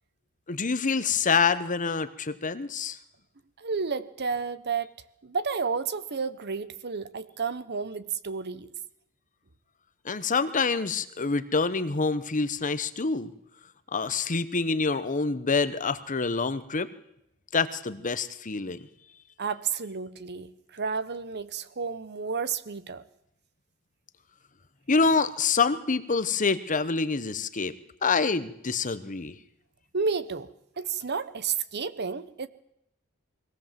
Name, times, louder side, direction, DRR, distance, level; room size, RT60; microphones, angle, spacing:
voice 1, 0.5-3.0 10.0-13.3 13.9-16.9 17.5-18.8 24.9-27.7 28.0-29.3, left 4 dB, 35° left, 14 dB, 1.0 m, -26 dB
voice 2, 3.6-4.9 5.2-8.7 19.4-23.0 29.9-30.5 30.8-32.5, right 5 dB, 50° right, 14 dB, 1.1 m, -31 dB
22.0 x 17.5 x 7.5 m, 0.78 s
head